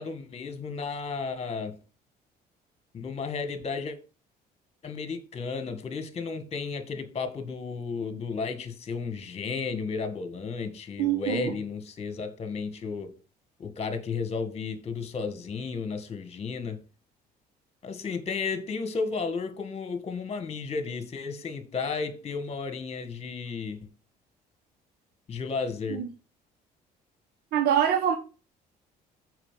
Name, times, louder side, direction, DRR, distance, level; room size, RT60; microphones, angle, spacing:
voice 1, 0.0-1.8 2.9-4.0 4.8-13.1 13.6-16.8 17.8-23.8 25.3-26.0, left 5 dB, 35° left, 1.8 m, -33 dB
voice 2, 11.0-11.5 26.0-26.1 27.5-28.2, right 9 dB, 70° right, 1.4 m, -24 dB
7.0 x 5.3 x 5.8 m
cardioid pair, 110°, 17 cm